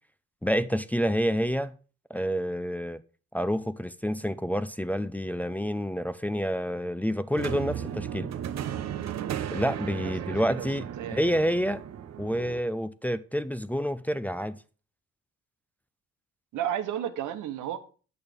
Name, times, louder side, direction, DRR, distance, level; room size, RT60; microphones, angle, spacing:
voice 1, 0.4-1.7 2.1-3.0 3.3-8.3 9.4-10.8 11.1-11.8 12.2-14.6, equal, 5° left, 0.5 m, -28 dB
sound 1, 7.4-12.6, right 10 dB, 60° right, 0.9 m, -35 dB
voice 2, 10.0-11.3 16.5-17.8, right 10 dB, 85° right, 1.2 m, -33 dB
8.9 x 6.3 x 5.1 m
cardioid pair, 90°, 30 cm